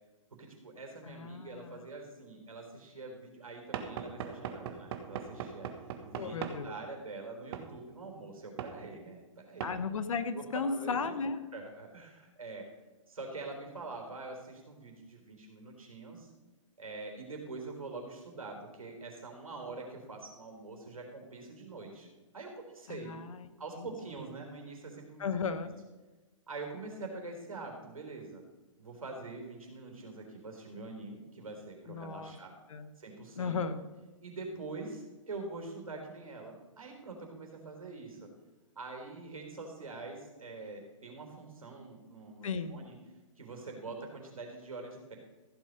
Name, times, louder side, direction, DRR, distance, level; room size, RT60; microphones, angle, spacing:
voice 1, 0.4-5.7 6.0-9.7 10.3-11.1 11.5-12.7 13.1-16.3 16.8-22.1 22.3-23.1 23.6-25.3 26.5-28.4 28.8-32.6 33.0-33.6 34.2-38.3 38.8-43.0 43.4-45.1, right 3 dB, 85° right, 2 dB, 3.7 m, -44 dB
voice 2, 1.0-1.8 6.1-6.7 9.6-11.4 22.9-23.4 23.8-23.9 25.2-25.7 31.9-32.3 32.7-32.9 33.4-33.9 42.4-42.8, left 5 dB, 70° left, 11 dB, 1.2 m, -35 dB
Knock / Wood, 3.7-6.6 7.5-7.7 8.6-8.8 9.6-9.8, right 8 dB, 45° right, 1.5 m, -39 dB
15.0 x 7.6 x 5.3 m, 1.2 s
hypercardioid pair, 130°, 17 cm